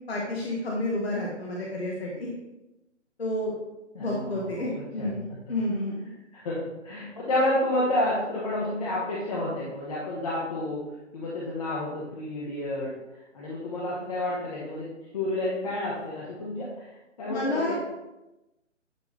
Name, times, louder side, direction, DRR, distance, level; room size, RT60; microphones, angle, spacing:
voice 1, 0.1-2.3 3.2-3.6 4.0-5.9 17.3-17.7, left 1 dB, 55° left, -2 dB, 1.3 m, -30 dB
voice 2, 3.9-5.1 6.3-10.8 11.1-14.9 15.1-17.7, left 1 dB, 30° left, -5 dB, 1.1 m, -30 dB
10.5 x 3.6 x 3.2 m, 0.97 s
figure-of-eight pair, 140°, 37 cm